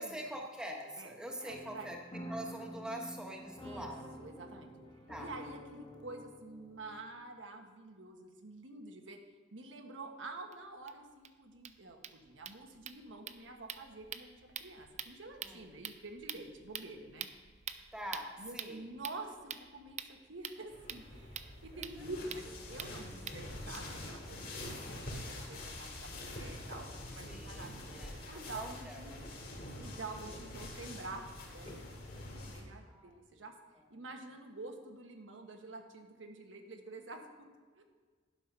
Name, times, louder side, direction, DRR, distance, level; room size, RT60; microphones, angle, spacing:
voice 1, 0.0-4.3 5.1-5.3 15.4-15.6 17.9-18.9 21.7-22.1 27.3-29.2 32.9-33.4 33.7-33.8, equal, 5° right, 1 dB, 1.1 m, -45 dB
voice 2, 1.4-1.9 3.6-3.9 4.2-4.7 5.2-9.2 9.5-17.3 18.4-27.7 28.3-29.2 29.8-33.5 33.9-37.8, right 2 dB, 90° right, 4 dB, 1.2 m, -48 dB
sound 1, 1.5-7.1, equal, 25° left, 1.1 m, -48 dB
sound 2, 10.5-10.6 10.9-11.0 11.2-11.3 11.5-23.8, right 8 dB, 40° right, 0.5 m, -47 dB
sound 3, 20.7-32.6, left 1 dB, 50° left, 2.3 m, -45 dB
11.5 x 6.0 x 5.4 m, 1.5 s
head